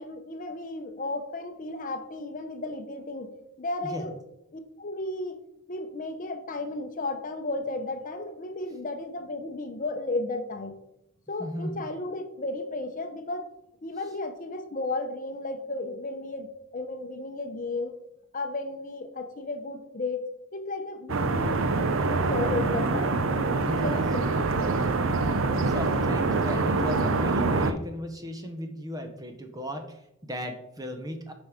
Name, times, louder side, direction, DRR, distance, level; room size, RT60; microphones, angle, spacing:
voice 1, 0.0-3.3 3.6-4.2 4.5-5.4 5.7-10.8 11.3-13.5 13.8-18.0 18.3-20.2 20.5-23.1 23.5-24.0 24.5-24.6, left 2 dB, 40° left, 6 dB, 0.8 m, -34 dB
voice 2, 11.4-11.8 23.7-24.7 25.7-31.3, equal, 20° right, 5 dB, 1.0 m, -36 dB
sound 1, 21.1-27.7, right 3 dB, 75° right, 0.6 m, -25 dB
7.8 x 5.4 x 5.0 m, 0.83 s
head